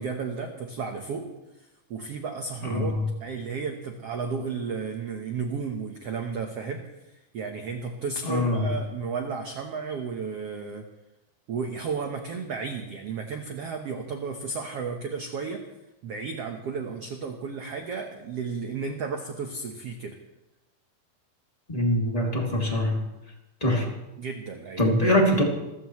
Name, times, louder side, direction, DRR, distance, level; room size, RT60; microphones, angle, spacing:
voice 1, 0.0-6.9 7.3-10.9 11.5-15.7 16.0-20.2 24.2-24.9, right 5 dB, 90° right, 3 dB, 1.3 m, -33 dB
voice 2, 2.6-3.1 8.2-8.7 21.7-23.0 23.6-23.9 24.8-25.4, left 1 dB, 10° left, -1 dB, 1.9 m, -23 dB
27.5 x 14.5 x 3.2 m, 0.99 s
omnidirectional pair, 4.6 m